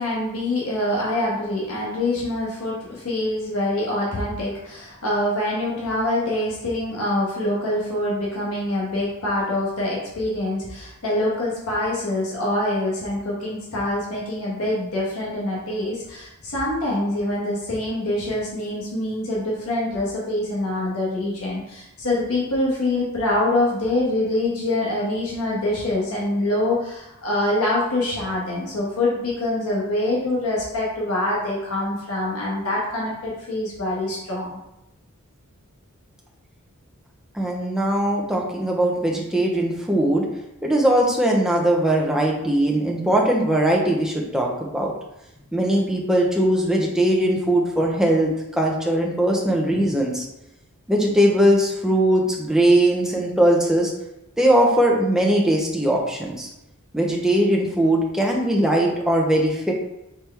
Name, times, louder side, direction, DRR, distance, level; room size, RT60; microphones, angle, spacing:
voice 1, 0.0-34.6, left 1 dB, 75° left, -5 dB, 1.2 m, -25 dB
voice 2, 37.3-40.3 40.6-44.9 45.5-50.3 50.9-53.9 54.4-56.5 56.9-59.7, right 1 dB, 5° right, -2 dB, 0.6 m, -20 dB
4.4 x 3.3 x 3.4 m, 0.88 s
head